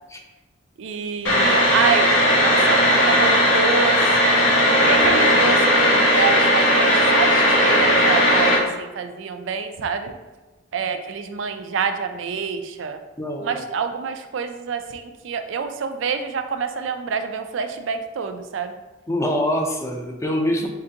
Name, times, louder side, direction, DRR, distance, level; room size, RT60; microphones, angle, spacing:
voice 1, 0.8-2.1 2.4-4.4 4.8-10.1 10.7-13.0 13.4-18.8, right 5 dB, 70° right, 7 dB, 0.4 m, -27 dB
sound 1, 1.2-8.6, equal, 85° left, 1.1 m, -17 dB
voice 2, 13.2-13.6 19.1-20.7, equal, 15° left, 2 dB, 0.5 m, -24 dB
4.3 x 3.8 x 2.8 m, 1.1 s
head